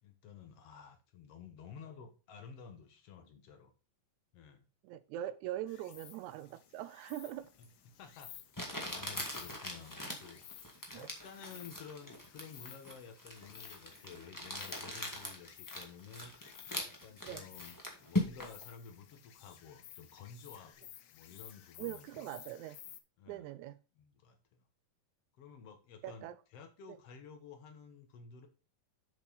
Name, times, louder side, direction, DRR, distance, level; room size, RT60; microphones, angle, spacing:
voice 1, 0.0-3.7 4.3-4.6 7.6-8.4 8.7-10.4 10.9-16.5 16.8-22.3 23.2-23.5 24.0-24.6 25.4-28.5, left 6 dB, 55° left, 2.0 m, -53 dB
voice 2, 4.8-7.5 10.9-11.1 17.2-17.4 21.8-22.8 23.3-23.8 26.0-26.3, right 13 dB, 90° right, 1.7 m, -42 dB
Insect, 5.7-23.0, left 11 dB, 85° left, 1.4 m, -56 dB
Crumpling crinkling, 7.6-7.7 8.5-18.6, left 1 dB, 20° left, 0.4 m, -41 dB
7.4 x 7.2 x 4.0 m
omnidirectional pair, 4.0 m